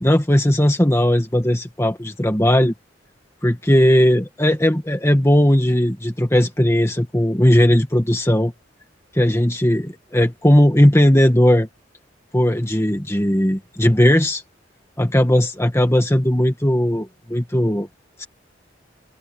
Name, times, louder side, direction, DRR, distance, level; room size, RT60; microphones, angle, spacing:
voice 1, 0.0-2.7 3.4-8.5 9.1-11.7 12.3-14.4 15.0-17.9 18.2-18.3, equal, 15° left, 1.7 m, -17 dB
head